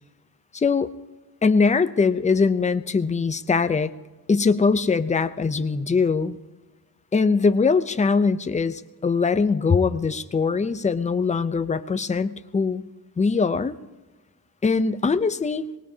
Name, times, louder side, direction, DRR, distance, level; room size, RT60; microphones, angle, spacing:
voice 1, 0.5-0.9 1.4-3.9 4.3-6.4 7.1-12.8 13.2-13.7 14.6-15.7, left 4 dB, 20° left, 11 dB, 0.4 m, -22 dB
23.5 x 19.0 x 2.7 m, 1.2 s
wide cardioid pair, 165°, 40 cm